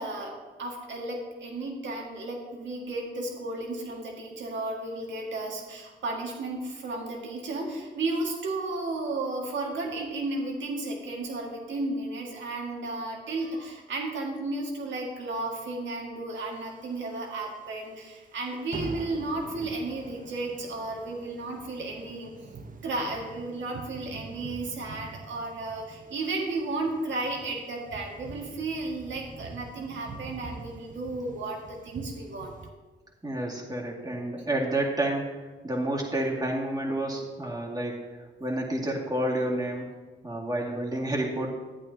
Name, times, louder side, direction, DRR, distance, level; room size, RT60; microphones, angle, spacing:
voice 1, 0.0-22.3 22.8-32.5, right 2 dB, 70° right, 0 dB, 1.9 m, -33 dB
sound 1, 16.5-17.5 17.8-18.0 18.3-18.5 18.7-32.7, right 4 dB, 45° right, 0.8 m, -44 dB
voice 2, 33.2-39.9 40.2-41.5, right 1 dB, 20° right, -2 dB, 2.1 m, -30 dB
11.5 x 8.6 x 2.8 m, 1.3 s
supercardioid pair, 65°, 20 cm